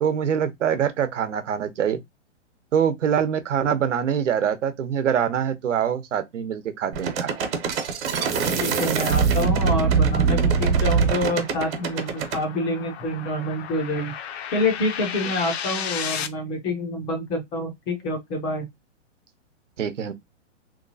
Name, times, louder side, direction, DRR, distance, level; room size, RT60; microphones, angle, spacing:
voice 1, 0.0-2.0 2.7-7.4 19.8-20.1, right 8 dB, 80° right, 1.0 m, -24 dB
sound 1, 6.9-12.4, right 5 dB, 50° right, 1.1 m, -22 dB
voice 2, 8.6-14.1 14.5-18.7, left 1 dB, 15° left, 0.5 m, -27 dB
sound 2, 9.6-16.3, left 8 dB, 60° left, 0.7 m, -35 dB
3.1 x 3.0 x 2.7 m
hypercardioid pair, 155°, 36 cm